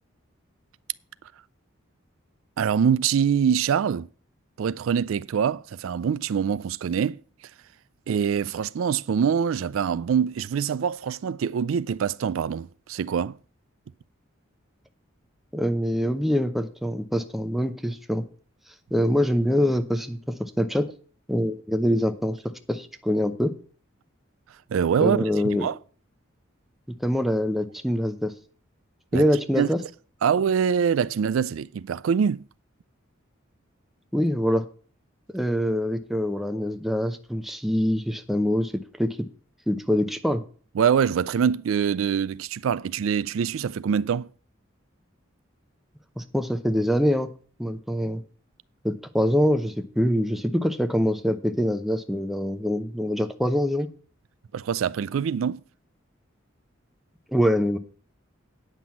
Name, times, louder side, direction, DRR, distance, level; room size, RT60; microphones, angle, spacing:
voice 1, 2.6-4.1 4.6-7.2 8.1-13.4 24.7-25.2 25.6-25.8 29.1-29.2 29.6-29.7 30.2-32.4 40.8-44.3 54.5-55.6, right 7 dB, 80° right, 0.4 m, -24 dB
voice 2, 15.5-18.2 18.9-20.9 21.3-22.4 22.7-23.5 25.0-25.7 27.0-28.3 29.1-29.8 34.1-34.7 35.3-39.2 39.7-40.4 46.2-47.3 47.6-48.2 48.8-53.9 57.3-57.8, equal, ahead, 0.7 m, -24 dB
9.4 x 6.0 x 7.1 m
head